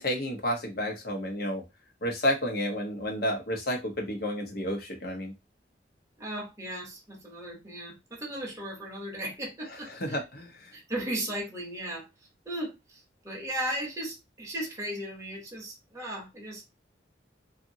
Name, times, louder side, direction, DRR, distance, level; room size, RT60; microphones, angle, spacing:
voice 1, 0.0-1.6 2.0-5.3 10.0-10.7, equal, 55° left, 0.9 m, -31 dB
voice 2, 6.2-10.2 10.7-12.1 12.5-16.6, right 1 dB, 15° right, 0.8 m, -36 dB
2.6 x 2.6 x 2.7 m
head